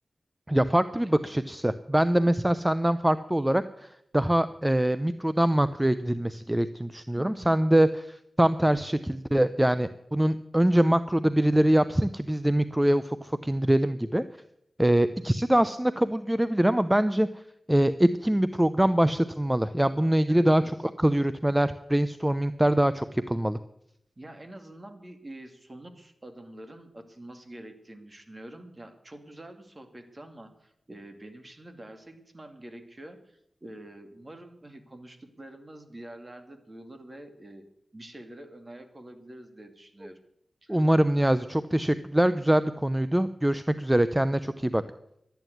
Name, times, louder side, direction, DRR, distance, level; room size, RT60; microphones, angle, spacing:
voice 1, 0.5-14.2 14.8-17.3 17.7-20.6 21.0-23.6 40.7-44.8, right 1 dB, 15° right, 13 dB, 0.7 m, -24 dB
voice 2, 7.1-7.5 20.3-20.7 24.2-37.6 37.9-40.2 40.6-40.9, right 1 dB, 35° right, 7 dB, 2.4 m, -46 dB
12.5 x 9.2 x 9.3 m, 0.76 s
cardioid pair, 40°, 0 cm